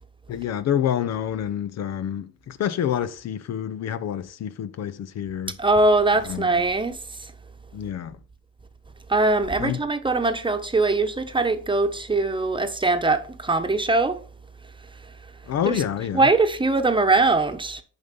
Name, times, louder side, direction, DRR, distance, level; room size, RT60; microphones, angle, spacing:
voice 1, 0.3-5.6 6.2-6.5 7.7-8.2 9.6-9.8 15.5-16.3, left 9 dB, 60° left, 0.6 m, -27 dB
voice 2, 5.6-7.3 9.1-14.2 15.7-15.8 16.1-17.8, right 3 dB, 15° right, 1.0 m, -21 dB
7.2 x 5.3 x 5.4 m
cardioid pair, 90°, 30 cm